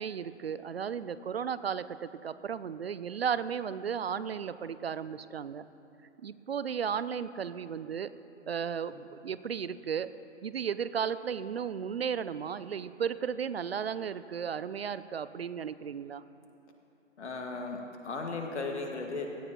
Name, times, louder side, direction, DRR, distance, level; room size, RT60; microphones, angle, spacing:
voice 1, 0.0-5.6 6.2-8.1 8.5-10.1 10.4-16.2, right 7 dB, 55° right, 15 dB, 0.5 m, -34 dB
voice 2, 17.2-19.3, left 3 dB, 65° left, 2 dB, 2.0 m, -36 dB
17.0 x 13.5 x 3.0 m, 2.7 s
hypercardioid pair, 155°, 37 cm